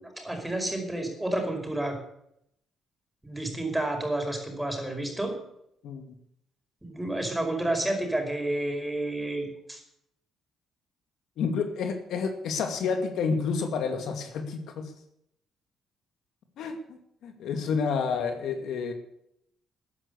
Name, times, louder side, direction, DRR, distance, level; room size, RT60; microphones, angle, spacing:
voice 1, 0.0-2.0 3.2-5.3 6.8-9.8, right 1 dB, 10° right, 4 dB, 5.1 m, -30 dB
voice 2, 11.4-14.9 16.6-18.9, left 5 dB, 80° left, 6 dB, 2.4 m, -29 dB
13.5 x 10.5 x 8.3 m, 0.75 s
cardioid pair, 90°, 0 cm